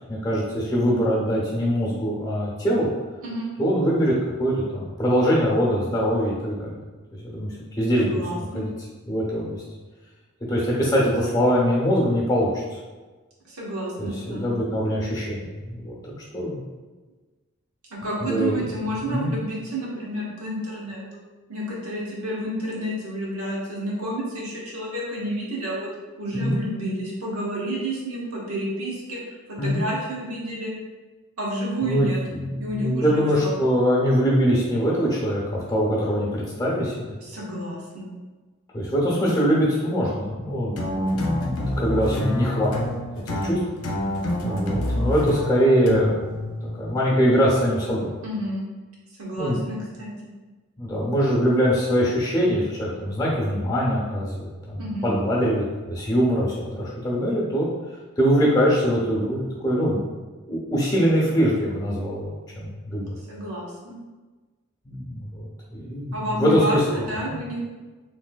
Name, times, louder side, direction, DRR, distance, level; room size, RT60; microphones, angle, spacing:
voice 1, 0.1-2.9 3.6-4.1 4.4-6.8 7.1-8.7 9.1-9.6 10.5-12.5 14.0-16.6 18.2-18.6 19.1-19.3 26.3-26.6 29.6-29.8 31.8-37.1 38.7-40.7 41.1-43.6 44.4-46.4 46.8-48.1 49.4-49.7 50.8-57.7 58.2-60.1 60.5-63.2 64.8-67.1, equal, 15° left, -5 dB, 0.7 m, -23 dB
voice 2, 8.0-8.6 13.5-14.5 17.9-21.2 21.5-25.9 26.2-30.7 31.4-32.2 32.6-33.6 37.2-38.1 48.2-48.7 49.2-50.1 54.8-55.2 63.3-64.0 66.1-67.6, right 1 dB, 90° right, -5 dB, 1.0 m, -30 dB
sound 1, 40.8-47.2, left 1 dB, 85° left, 0.5 m, -27 dB
3.2 x 3.2 x 2.2 m, 1.3 s
head